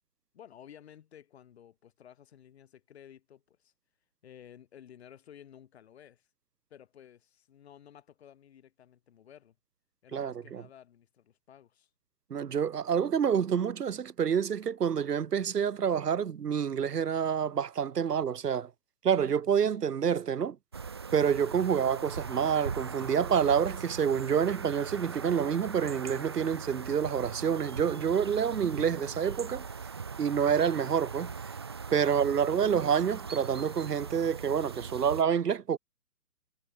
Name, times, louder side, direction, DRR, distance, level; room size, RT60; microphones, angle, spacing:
voice 1, 0.3-3.7 4.2-6.3 6.7-9.6 10.0-11.9, left 9 dB, 40° left, 7.2 m, -54 dB
voice 2, 10.1-10.6 12.3-18.7 19.0-20.6 21.1-29.6 30.2-31.3 31.9-35.8, right 7 dB, 75° right, 0.7 m, -28 dB
sound 1, 20.7-35.2, right 5 dB, 15° right, 0.6 m, -40 dB
figure-of-eight pair, 135°, 48 cm